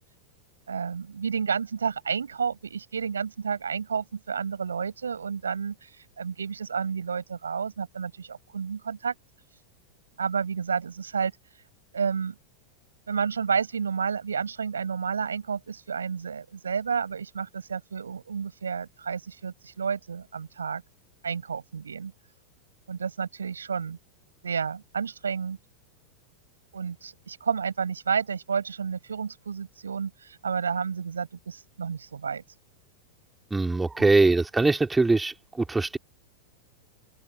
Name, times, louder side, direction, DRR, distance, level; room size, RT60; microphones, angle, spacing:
voice 1, 0.7-9.1 10.2-11.3 11.9-12.3 13.1-20.8 21.2-22.1 22.9-24.0 24.4-25.6 26.7-32.4 34.0-34.1, right 6 dB, 70° right, 7.3 m, -31 dB
voice 2, 33.5-35.3 35.7-36.0, right 3 dB, 10° right, 3.1 m, -22 dB
open air
figure-of-eight pair, 90°, 0 cm